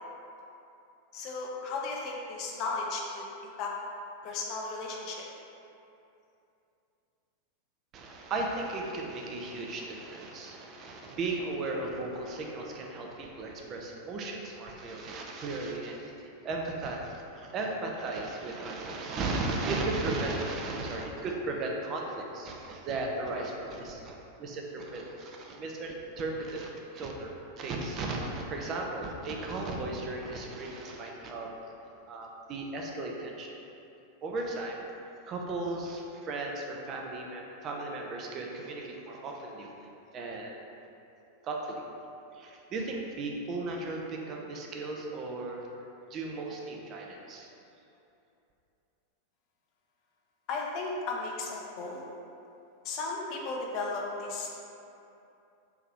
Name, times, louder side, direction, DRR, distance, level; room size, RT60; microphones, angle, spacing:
voice 1, 1.1-3.7 4.2-5.3 50.5-52.0 52.8-54.5, left 3 dB, 40° left, -1 dB, 0.5 m, -35 dB
voice 2, 7.9-27.3 27.6-31.5 32.1-33.6 34.2-34.8 35.3-39.7 40.1-40.5 41.4-41.8 42.3-45.7 46.1-47.5, right 2 dB, 35° right, 0 dB, 0.4 m, -36 dB
3.7 x 2.7 x 3.0 m, 2.8 s
figure-of-eight pair, 90°, 0 cm